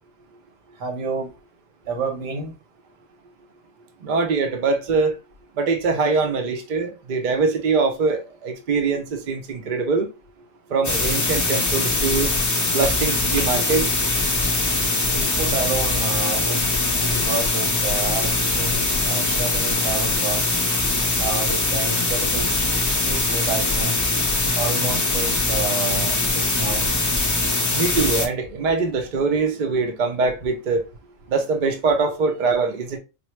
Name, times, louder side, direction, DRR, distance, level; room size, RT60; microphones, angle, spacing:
voice 1, 0.8-1.3 1.9-2.5 15.1-20.6 21.2-24.0 24.5-26.9, right 3 dB, 80° right, 1.4 m, -30 dB
voice 2, 4.0-5.1 5.6-10.1 10.7-12.3 12.7-13.9 27.7-30.8 31.3-33.0, right 4 dB, 50° right, 0.6 m, -23 dB
sound 1, 10.8-28.3, left 2 dB, 25° left, 0.3 m, -22 dB
4.4 x 2.0 x 3.1 m
omnidirectional pair, 1.3 m